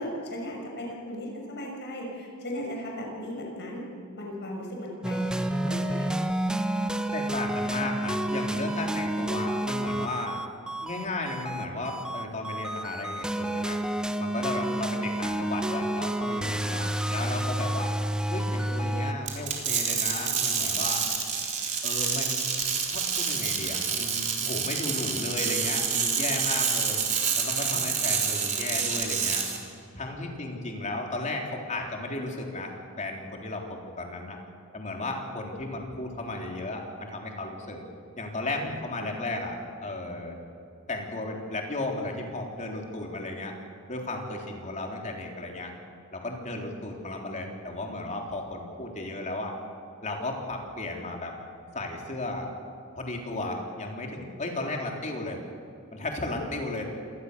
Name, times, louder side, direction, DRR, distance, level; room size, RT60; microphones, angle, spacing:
voice 1, 0.0-3.8 4.1-6.2 27.7-27.9 38.6-38.7 39.0-39.4 44.4-44.6 56.2-56.5, equal, 55° left, -1 dB, 6.4 m, -37 dB
sound 1, 5.0-19.1, right 1 dB, 5° right, 0.9 m, -30 dB
voice 2, 7.1-10.4 10.8-13.8 14.2-17.9 18.3-21.0 21.8-22.5 22.9-27.0 27.3-29.4 29.9-32.7 33.0-34.4 34.7-37.8 38.2-39.6 39.8-40.4 40.9-43.5 43.9-45.7 46.1-49.5 50.0-51.4 51.7-52.5 53.0-55.4 55.9-56.8, left 2 dB, 35° left, 1 dB, 3.6 m, -34 dB
sound 2, 19.3-29.6, right 6 dB, 35° right, 4.0 m, -28 dB
27.5 x 19.5 x 6.9 m, 2.6 s
head